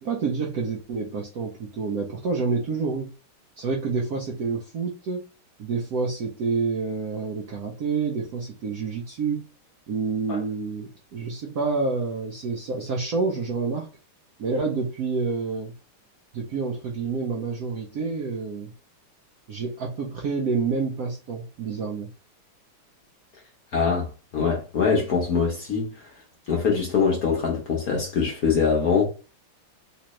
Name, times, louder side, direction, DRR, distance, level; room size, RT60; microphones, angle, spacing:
voice 1, 0.0-3.1 3.6-5.2 5.6-9.5 9.9-13.9 14.4-15.7 16.3-18.7 19.5-22.1, right 4 dB, 85° right, 0.8 m, -28 dB
voice 2, 23.7-24.1 24.3-25.9 26.5-29.1, left 5 dB, 60° left, 1.0 m, -23 dB
3.3 x 3.1 x 3.0 m
omnidirectional pair, 2.4 m